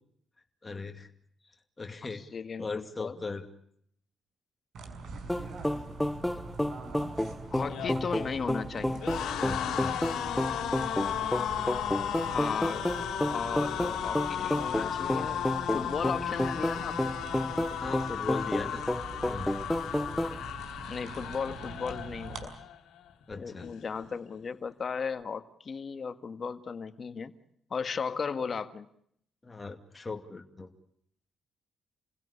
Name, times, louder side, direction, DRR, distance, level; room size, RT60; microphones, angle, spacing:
voice 1, 0.6-1.1 1.8-2.3 2.6-3.5 9.4-10.0 17.8-18.8 19.2-19.5 23.3-23.7 29.4-30.7, left 4 dB, 25° left, 4 dB, 2.4 m, -38 dB
voice 2, 2.3-3.2 7.5-9.0 12.3-12.9 13.3-15.4 15.7-17.2 20.9-22.5 23.4-27.4 27.7-28.9, left 5 dB, 45° left, 9 dB, 1.8 m, -36 dB
sound 1, 4.7-22.5, right 3 dB, 70° right, 6.2 m, -44 dB
sound 2, 5.3-20.4, left 1 dB, 5° left, 0.9 m, -31 dB
sound 3, 7.6-22.8 23.1-23.3 23.6-24.4, left 10 dB, 85° left, 2.5 m, -35 dB
28.5 x 17.0 x 8.5 m, 0.68 s
cardioid pair, 90°, 0 cm